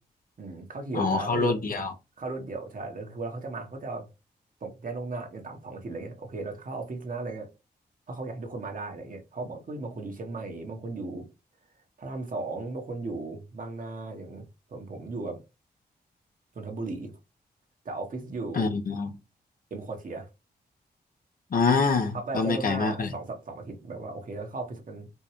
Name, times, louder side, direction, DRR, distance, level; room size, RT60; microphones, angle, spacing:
voice 1, 0.4-1.6 2.2-4.1 4.6-7.5 8.1-11.3 12.0-15.4 16.5-17.1 17.8-18.7 19.7-20.3 22.1-25.1, right 3 dB, 55° right, 1.1 m, -36 dB
voice 2, 0.9-1.9 18.5-19.1 21.5-23.1, left 4 dB, 55° left, 0.8 m, -25 dB
4.5 x 2.2 x 3.0 m
cardioid pair, 50°, 17 cm